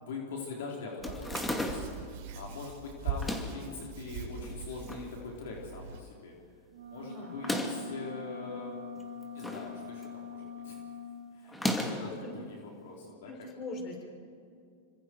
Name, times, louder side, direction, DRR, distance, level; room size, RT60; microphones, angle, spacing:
voice 1, 0.0-6.4 6.9-8.7 9.3-11.0 11.3-13.3, left 4 dB, 75° left, -1 dB, 4.1 m, -43 dB
sound 1, 1.0-2.0 3.1-3.7 4.4-5.1 5.4-5.5 5.7-5.8 7.3-7.9 9.0-9.7 10.0-10.4 11.5-12.1, left 1 dB, 10° left, 2.5 m, -35 dB
Hands, 1.0-6.0, right 5 dB, 60° right, 5.0 m, -41 dB
sound 2, 6.7-11.1, left 4 dB, 85° right, 5.0 m, -43 dB
voice 2, 6.9-7.3 12.1-12.3 13.2-14.1, left 2 dB, 35° left, 0 dB, 6.9 m, -42 dB
27.0 x 25.0 x 4.7 m, 2.4 s
hypercardioid pair, 120°, 0 cm